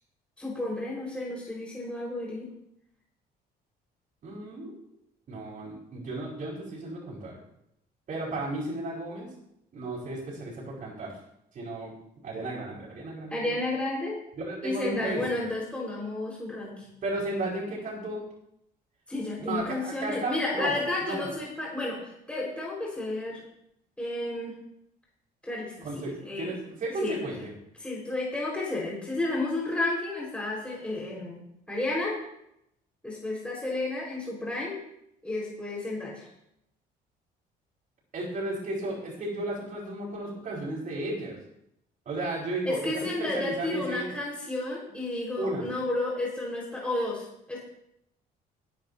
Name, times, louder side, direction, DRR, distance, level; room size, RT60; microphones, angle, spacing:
voice 1, 0.4-2.5 13.3-14.2 14.6-16.9 19.1-23.4 24.0-24.5 25.4-26.5 27.0-27.2 27.8-31.4 31.7-32.2 33.0-34.8 35.2-36.3 42.6-47.6, left 2 dB, 5° left, -5 dB, 5.4 m, -32 dB
voice 2, 4.2-4.7 5.3-7.4 8.1-9.3 9.7-11.1 11.5-11.9 12.2-13.5 14.4-15.2 17.0-18.2 19.4-21.3 25.8-27.5 38.1-41.4 42.0-44.2 45.4-45.6, right 2 dB, 50° right, -4 dB, 5.3 m, -34 dB
19.5 x 10.5 x 3.0 m, 0.78 s
cardioid pair, 110°, 17 cm